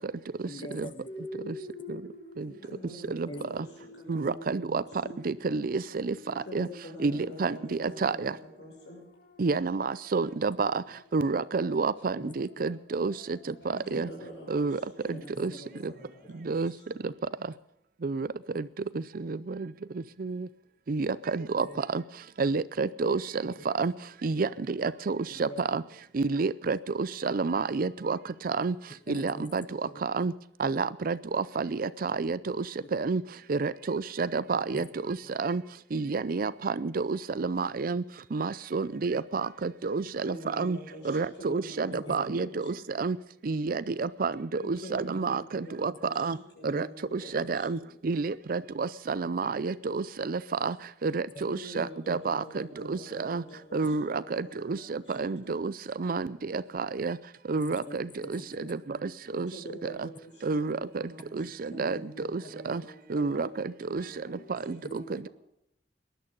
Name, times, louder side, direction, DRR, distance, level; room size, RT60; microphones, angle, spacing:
voice 1, 0.4-1.3 3.3-3.4 12.2-12.3 15.1-15.9 21.6-21.8 23.4-23.6 25.3-25.6 29.1-29.5 29.8-30.0 32.8-32.9 34.7-34.9 35.2-35.3 42.1-42.2 57.5-58.7 64.8-64.9, left 1 dB, 30° left, 9 dB, 1.4 m, -44 dB
sound 1, 1.1-15.3, left 1 dB, 60° left, 2.7 m, -50 dB
voice 2, 2.4-3.6 3.9-5.2 6.4-9.0 13.6-17.0 40.0-42.8 44.6-47.9 51.4-55.6 59.3-64.5 64.8-65.3, equal, 80° left, -1 dB, 6.4 m, -47 dB
voice 3, 4.1-4.8 5.3-6.1 6.5-6.7 7.0-8.3 9.4-10.8 11.1-13.1 13.7-14.1 14.5-14.8 15.4-15.5 16.5-16.7 18.0-18.3 19.2-19.4 20.2-20.5 20.9-21.7 21.9-22.0 22.4-23.9 24.2-25.8 26.1-28.2 28.4-28.7 29.1-29.6 30.0-30.3 30.6-32.4 32.9-33.2 33.5-35.6 35.9-38.0 38.3-40.8 41.0-43.2 43.5-46.4 46.6-46.9 47.1-47.8 48.0-50.7 51.0-52.6 52.9-53.4 53.7-55.7 56.0-56.3 56.5-57.2 57.5-58.1 58.3-58.4 59.0-59.1 59.4-59.5 60.0-60.1 60.4-61.0 61.3-62.0 62.3-62.8 63.1-64.0, right 4 dB, 55° right, 16 dB, 0.5 m, -29 dB
19.0 x 11.5 x 5.4 m, 0.80 s
head